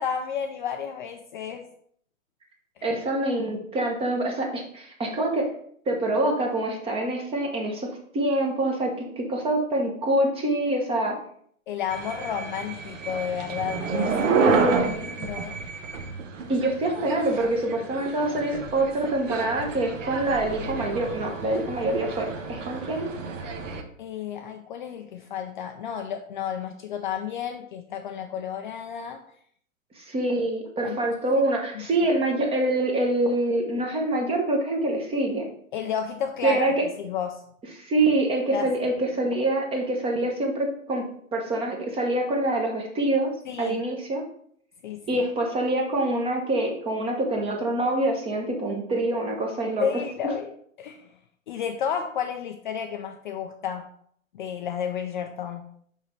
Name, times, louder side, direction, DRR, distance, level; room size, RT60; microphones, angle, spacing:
voice 1, 0.0-1.6 2.8-2.9 11.7-14.4 14.7-15.6 24.0-29.2 30.8-31.1 31.7-31.9 35.7-36.7 37.0-37.4 38.5-38.7 43.5-43.8 44.8-45.2 49.8-50.5 50.8-51.2 51.5-53.8 54.3-55.6, left 8 dB, 35° left, 4 dB, 0.4 m, -32 dB
voice 2, 2.8-5.5 5.8-11.2 14.3-15.1 16.5-23.1 29.9-35.5 36.4-36.9 37.8-41.0 41.3-43.3 43.6-44.2 45.1-50.0, right 1 dB, 15° right, 1 dB, 1.0 m, -25 dB
sound 1, 11.9-23.8, right 5 dB, 65° right, 1.0 m, -30 dB
5.9 x 5.5 x 3.1 m, 0.63 s
hypercardioid pair, 125°, 41 cm